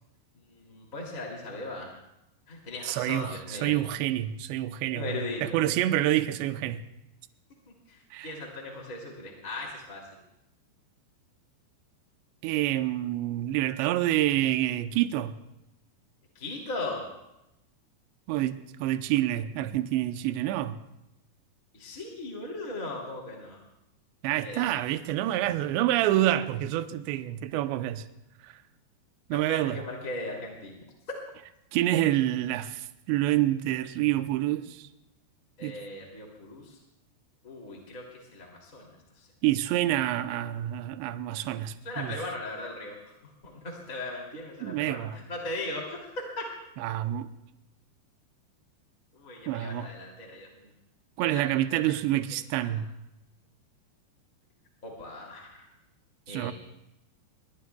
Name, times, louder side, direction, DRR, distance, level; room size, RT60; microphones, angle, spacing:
voice 1, 0.5-1.9 2.5-3.7 4.9-5.4 7.9-10.0 16.3-17.1 21.7-23.6 24.4-24.6 29.5-30.8 35.6-36.8 37.4-39.3 41.8-43.0 43.2-46.4 49.1-50.7 51.2-51.4 51.7-52.0 52.6-52.8 54.8-55.7 56.3-56.5, left 2 dB, 25° left, 2.3 m, -38 dB
voice 2, 2.8-6.8 8.1-8.3 12.4-15.4 18.3-20.8 24.2-28.1 28.4-28.5 29.3-29.8 31.7-34.9 35.6-35.8 39.4-42.2 44.6-45.2 46.8-47.3 49.5-49.9 51.2-52.9 56.3-56.5, right 14 dB, 85° right, 2.9 m, -27 dB
27.0 x 23.5 x 2.3 m
omnidirectional pair, 5.0 m